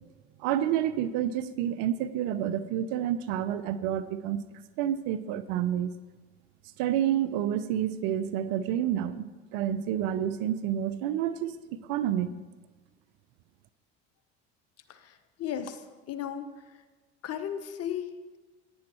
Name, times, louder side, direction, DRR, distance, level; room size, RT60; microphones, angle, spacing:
voice 1, 0.4-4.4 4.8-5.9 6.8-9.2 9.5-11.5 11.9-12.3, right 10 dB, 65° right, 14 dB, 0.7 m, -29 dB
voice 2, 15.4-15.8 16.1-16.5 17.2-18.4, left 9 dB, 45° left, 10 dB, 1.0 m, -35 dB
16.0 x 9.5 x 3.0 m, 1.3 s
hypercardioid pair, 80°, 34 cm